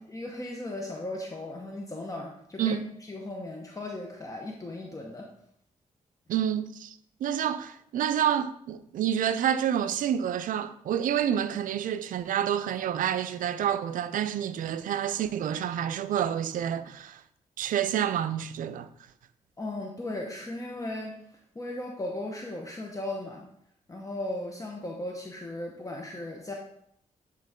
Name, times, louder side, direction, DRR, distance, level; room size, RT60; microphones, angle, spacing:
voice 1, 0.1-2.8 3.1-5.3 19.6-21.1 21.5-23.4 23.9-26.5, left 1 dB, 25° left, 0.9 m, -36 dB
voice 2, 6.3-17.2 17.6-18.9, right 9 dB, 80° right, 0.4 m, -28 dB
9.0 x 3.9 x 3.6 m
cardioid pair, 80°, 14 cm